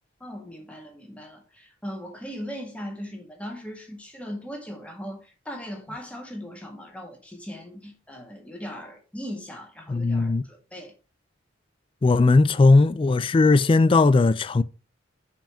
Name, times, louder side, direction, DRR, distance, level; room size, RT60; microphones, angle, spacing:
voice 1, 0.2-10.9, equal, 5° left, 1.8 m, -39 dB
voice 2, 9.9-10.4 12.0-14.6, left 3 dB, 25° left, 0.3 m, -18 dB
5.6 x 5.2 x 4.9 m
head